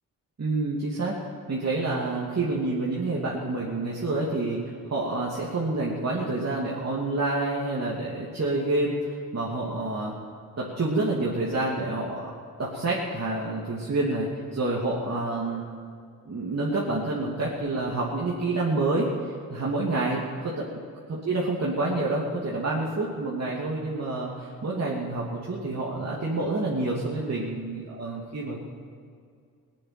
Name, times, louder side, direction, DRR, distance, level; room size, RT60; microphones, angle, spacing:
voice 1, 0.4-1.2 1.5-10.1 10.6-12.3 12.6-15.6 16.2-20.7 21.1-28.6, right 2 dB, 45° right, -5 dB, 2.8 m, -28 dB
18.5 x 7.9 x 9.1 m, 2.2 s
supercardioid pair, 55°, 36 cm